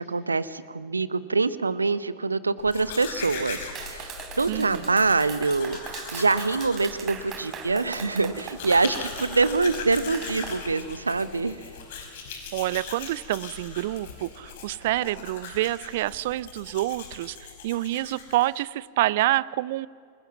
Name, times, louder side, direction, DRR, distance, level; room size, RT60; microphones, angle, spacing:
voice 1, 0.0-5.8 6.1-11.6, right 3 dB, 80° right, 16 dB, 0.9 m, -25 dB
Domestic sounds home sounds, 2.6-18.7, left 5 dB, 55° left, 4.9 m, -40 dB
Clapping, 3.7-10.6, right 6 dB, 30° right, 3.3 m, -40 dB
voice 2, 4.5-4.9 12.5-19.9, right 16 dB, 55° right, 21 dB, 0.5 m, -27 dB
28.0 x 20.5 x 7.2 m, 2.2 s
figure-of-eight pair, 90°, 0 cm